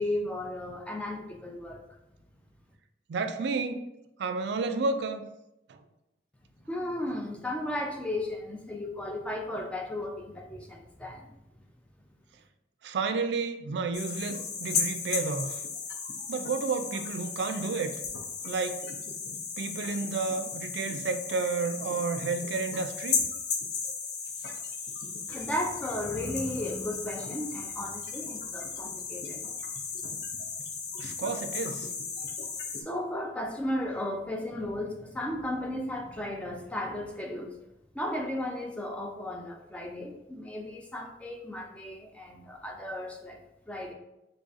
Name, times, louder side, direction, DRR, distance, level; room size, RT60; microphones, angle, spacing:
voice 1, 0.0-1.8 6.7-11.4 25.3-29.4 32.8-37.5 37.9-43.9, left 1 dB, 5° left, 1 dB, 0.3 m, -35 dB
voice 2, 3.1-3.8 4.2-5.3 5.7-5.8 12.8-15.6 16.3-18.0 18.5-18.8 19.6-23.2 31.0-31.9, right 4 dB, 75° right, 9 dB, 0.3 m, -31 dB
sound 1, 13.9-32.8, left 5 dB, 65° left, 0.5 m, -35 dB
3.9 x 3.3 x 2.4 m, 0.89 s
head